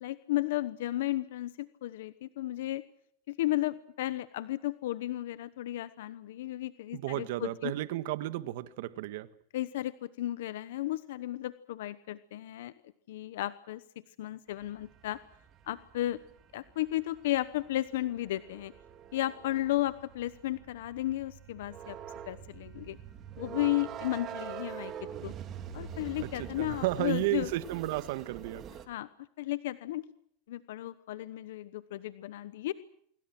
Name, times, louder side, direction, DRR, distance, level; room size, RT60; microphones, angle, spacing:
voice 1, 0.0-2.8 3.3-7.7 9.5-12.7 13.1-13.8 14.2-15.2 15.6-16.2 16.5-18.7 19.1-22.0 22.3-23.0 23.4-24.9 25.2-25.3 25.7-27.5 28.9-29.1 29.4-30.0 30.5-32.7, left 15 dB, 80° left, 1.0 m, -34 dB
voice 2, 6.9-9.3 26.2-28.6, right 15 dB, 70° right, 1.7 m, -33 dB
sound 1, 14.6-28.9, right 9 dB, 35° right, 2.9 m, -45 dB
26.5 x 23.5 x 6.1 m
supercardioid pair, 120°, 0 cm